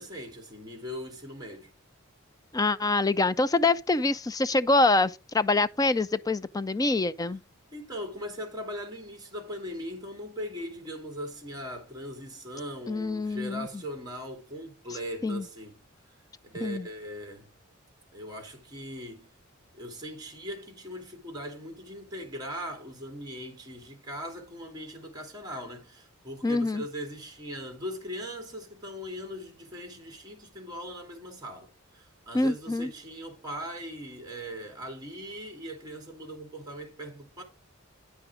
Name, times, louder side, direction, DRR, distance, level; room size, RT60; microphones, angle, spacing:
voice 1, 0.0-1.7 7.7-15.8 16.4-17.5 18.1-19.3 19.7-37.4, equal, 20° right, 2.9 m, -40 dB
voice 2, 2.5-7.4 12.9-13.7 15.2-15.4 16.6-16.9 26.4-26.8 32.3-32.9, left 2 dB, 15° left, 0.4 m, -25 dB
9.6 x 6.1 x 4.9 m
head